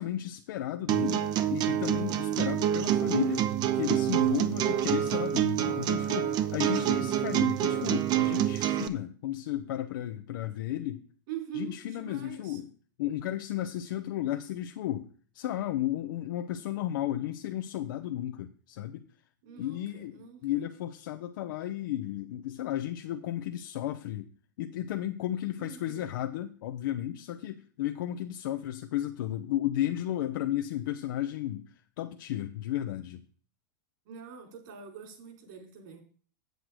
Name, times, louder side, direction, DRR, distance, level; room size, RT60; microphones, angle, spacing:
voice 1, 0.0-11.0 11.5-12.7 13.0-15.1 15.3-19.0 19.6-24.3 24.6-33.2, left 12 dB, 70° left, 6 dB, 0.7 m, -34 dB
sound 1, 0.9-8.9, right 11 dB, 40° right, 0.8 m, -27 dB
voice 2, 11.3-12.6 19.4-20.6 25.6-26.0 34.1-36.0, right 8 dB, 65° right, 3 dB, 4.1 m, -43 dB
7.9 x 7.8 x 4.9 m, 0.42 s
hypercardioid pair, 125°, 11 cm